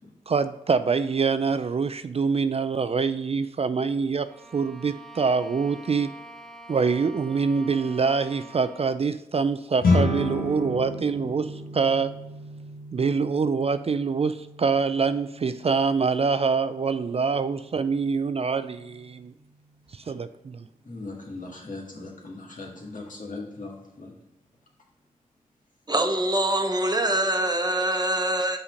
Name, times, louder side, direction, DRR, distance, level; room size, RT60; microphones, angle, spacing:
voice 1, 0.3-4.3 4.5-6.1 6.7-12.2 12.9-19.3 19.9-20.7, right 5 dB, 40° right, 0.4 m, -25 dB
Bowed string instrument, 4.2-9.1, right 2 dB, ahead, 0.7 m, -46 dB
sound 1, 9.8-19.3, left 2 dB, 75° left, 1.3 m, -32 dB
voice 2, 20.8-24.1, left 3 dB, 60° left, 1.8 m, -39 dB
voice 3, 25.9-28.6, right 1 dB, 25° right, 1.0 m, -24 dB
5.7 x 4.2 x 5.1 m
cardioid pair, 45°, 15 cm